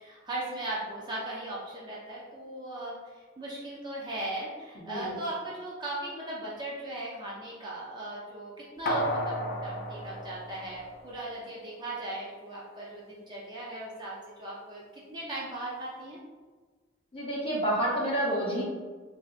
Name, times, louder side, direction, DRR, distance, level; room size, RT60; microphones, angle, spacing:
voice 1, 0.0-16.2, right 1 dB, 20° right, -6 dB, 0.5 m, -38 dB
sound 1, 8.9-11.4 11.8-11.9, equal, 50° left, 0.4 m, -33 dB
voice 2, 17.1-18.6, right 1 dB, 25° left, -6 dB, 0.9 m, -29 dB
3.3 x 2.7 x 2.4 m, 1.4 s
head